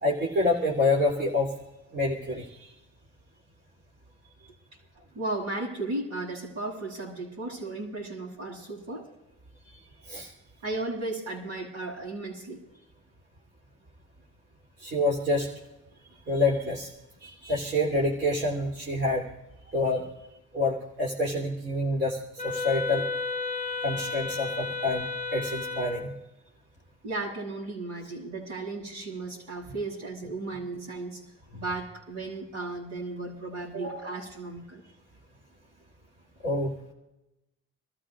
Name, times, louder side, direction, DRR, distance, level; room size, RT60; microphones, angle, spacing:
voice 1, 0.0-1.5 1.9-2.7 9.7-9.8 10.0-10.3 14.8-15.5 16.3-16.9 17.2-19.3 19.7-20.1 20.5-23.1 23.8-26.1 36.4-36.7, left 2 dB, 35° right, -2 dB, 3.1 m, -27 dB
voice 2, 5.1-9.1 10.6-12.6 27.0-31.2 31.5-34.8, right 2 dB, 65° right, -3 dB, 7.0 m, -35 dB
Wind instrument woodwind instrument, 22.4-26.2, left 4 dB, 25° left, 0.8 m, -33 dB
28.0 x 14.0 x 2.5 m, 0.97 s
cardioid pair, 90°, 30 cm